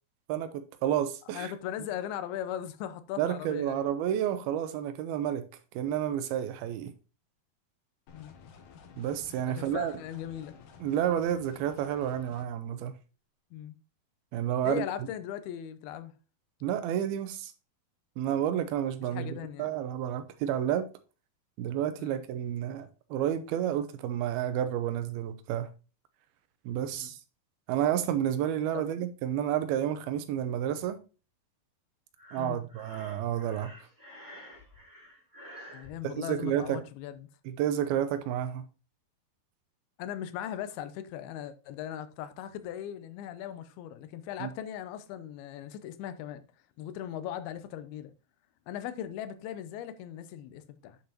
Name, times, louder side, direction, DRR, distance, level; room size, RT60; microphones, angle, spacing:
voice 1, 0.3-1.5 3.2-5.4 5.7-6.9 9.0-9.9 10.8-12.9 14.3-14.8 16.6-17.5 18.2-20.8 21.6-25.7 26.7-27.2 27.7-31.0 32.3-33.7 36.1-36.8 37.6-38.6 44.4-44.5, right 10 dB, 80° right, 2.7 m, -30 dB
voice 2, 1.3-3.9 8.1-8.4 9.4-10.5 13.5-13.8 14.6-16.1 19.1-19.8 22.0-22.2 27.0-27.1 28.7-28.9 32.4-32.6 35.7-37.3 40.0-46.4 46.8-48.1 48.7-51.0, left 10 dB, 85° left, 2.7 m, -39 dB
sound 1, 8.1-12.5, left 6 dB, 70° left, 2.3 m, -52 dB
Breathing, 32.2-35.9, equal, 5° right, 1.7 m, -49 dB
9.3 x 6.8 x 2.9 m
omnidirectional pair, 4.4 m